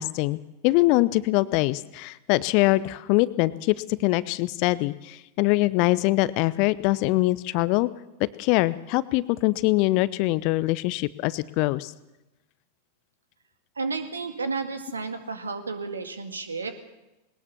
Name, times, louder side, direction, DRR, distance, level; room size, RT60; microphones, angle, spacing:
voice 1, 0.0-7.9 8.2-11.9, left 20 dB, 45° left, 18 dB, 0.7 m, -23 dB
voice 2, 13.8-16.7, right 4 dB, 75° right, 8 dB, 1.9 m, -32 dB
20.0 x 19.0 x 7.1 m, 0.98 s
figure-of-eight pair, 90°, 0 cm